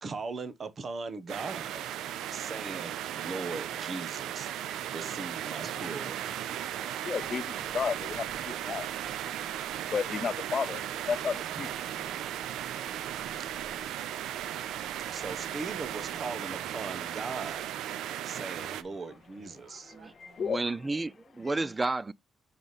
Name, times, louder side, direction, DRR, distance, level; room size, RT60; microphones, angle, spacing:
voice 1, 0.0-1.8 2.3-4.5 4.9-6.2 11.6-11.7 13.4-13.5 15.1-17.7 18.2-19.9, right 3 dB, 40° right, 1.0 m, -39 dB
sound 1, 1.3-18.8, right 11 dB, 85° right, 0.5 m, -36 dB
voice 2, 6.8-8.9 9.2-9.6 9.9-12.2 19.6-20.8, left 6 dB, 45° left, 0.3 m, -34 dB
sound 2, 7.1-20.5, right 3 dB, 60° right, 2.3 m, -56 dB
voice 3, 20.4-22.1, right 2 dB, 20° right, 0.4 m, -31 dB
5.0 x 4.8 x 4.0 m
cardioid pair, 90°, 0 cm